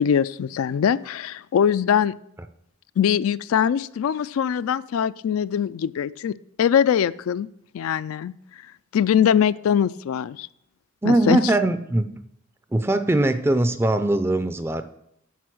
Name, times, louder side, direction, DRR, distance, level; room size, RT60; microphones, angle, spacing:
voice 1, 0.0-2.1 3.0-7.5 7.7-8.3 8.9-10.5 11.0-11.4, left 8 dB, 75° left, 16 dB, 0.3 m, -22 dB
voice 2, 11.0-12.1 12.7-14.8, right 2 dB, 10° right, 10 dB, 0.4 m, -21 dB
9.4 x 6.2 x 6.1 m, 0.77 s
head